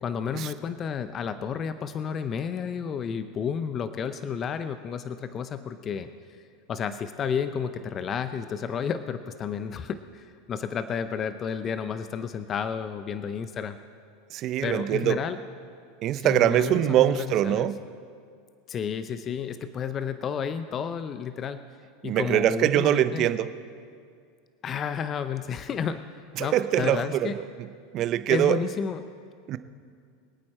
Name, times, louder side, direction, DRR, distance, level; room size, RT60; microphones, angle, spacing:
voice 1, 0.0-6.1 6.7-13.8 14.6-15.4 16.2-17.7 18.7-21.6 22.0-23.3 24.6-26.0 26.4-27.4 28.3-29.0, left 7 dB, 35° left, 11 dB, 0.7 m, -31 dB
voice 2, 14.3-15.2 16.0-17.8 22.0-23.5 26.4-27.3 27.9-28.6 29.5-29.6, right 12 dB, 45° right, 13 dB, 0.7 m, -23 dB
24.5 x 8.7 x 4.3 m, 2.2 s
hypercardioid pair, 90°, 0 cm